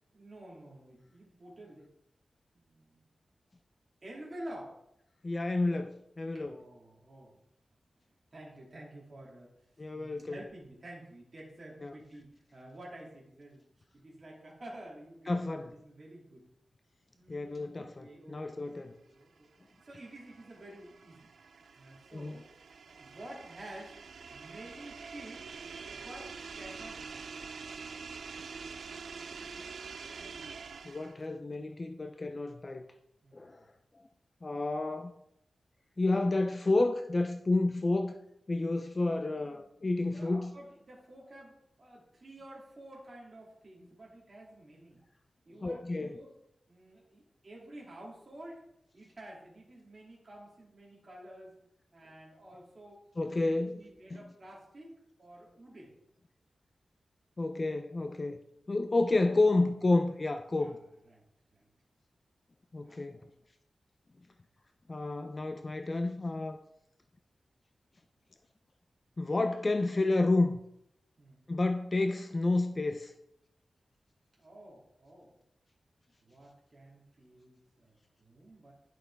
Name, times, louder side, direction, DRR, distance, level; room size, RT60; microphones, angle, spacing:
voice 1, 0.1-1.9 2.5-3.0 4.0-4.8 6.3-7.4 8.3-9.5 9.9-13.6 13.9-16.5 17.1-18.7 19.0-19.5 19.8-21.3 21.7-22.5 22.9-24.0 24.3-25.4 25.9-27.3 33.2-33.7 39.1-45.0 45.5-46.3 46.7-48.7 48.9-51.6 51.9-53.0 53.3-55.9 60.5-60.8 61.1-61.2 61.5-61.7 62.9-63.2 71.2-71.4 74.4-75.3 76.2-78.7, right 1 dB, 40° right, -4 dB, 2.6 m, -50 dB
voice 2, 5.2-6.6 9.8-10.4 11.8-11.9 15.3-15.7 17.3-18.9 22.1-22.4 30.8-32.9 33.3-33.6 34.4-35.1 36.0-38.1 38.5-40.5 45.6-46.2 53.2-53.8 54.1-54.2 57.4-58.4 58.7-60.8 62.7-63.2 64.9-66.6 69.2-70.6 71.5-73.1, left 2 dB, 30° left, 7 dB, 0.5 m, -30 dB
sound 1, 19.4-31.3, right 5 dB, 80° right, 0.4 m, -46 dB
11.0 x 6.1 x 3.4 m, 0.78 s
wide cardioid pair, 115°, 0 cm